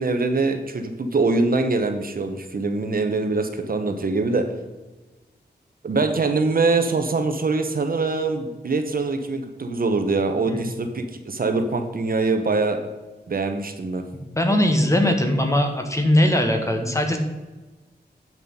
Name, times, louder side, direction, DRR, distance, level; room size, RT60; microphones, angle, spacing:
voice 1, 0.0-4.5 5.8-12.8 13.3-14.0, right 3 dB, 55° right, 6 dB, 1.1 m, -23 dB
voice 2, 14.1-17.2, left 1 dB, 15° left, 4 dB, 1.5 m, -20 dB
9.6 x 6.0 x 5.4 m, 1.2 s
wide cardioid pair, 100°, 17 cm